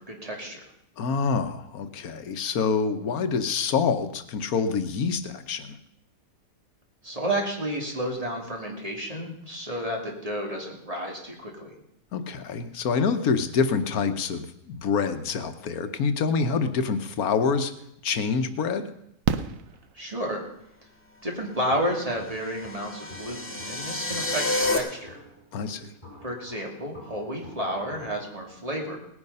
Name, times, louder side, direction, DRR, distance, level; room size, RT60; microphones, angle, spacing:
voice 1, 0.1-0.6 7.0-11.7 19.9-20.4 21.2-24.4 24.7-25.2 26.2-29.0, equal, 25° right, 0 dB, 2.7 m, -31 dB
voice 2, 1.0-5.8 12.1-17.7 18.0-18.9 25.5-25.9, left 5 dB, 85° left, 9 dB, 1.4 m, -26 dB
Fireworks, 19.2-20.6 22.3-22.4 22.6-22.7, right 8 dB, 70° right, 1.1 m, -30 dB
Walk footsteps, 21.7-28.4, left 1 dB, 30° left, 4.3 m, -49 dB
sound 1, 22.2-24.8, left 2 dB, 10° left, 1.4 m, -29 dB
18.5 x 9.7 x 5.5 m, 0.77 s
omnidirectional pair, 1.5 m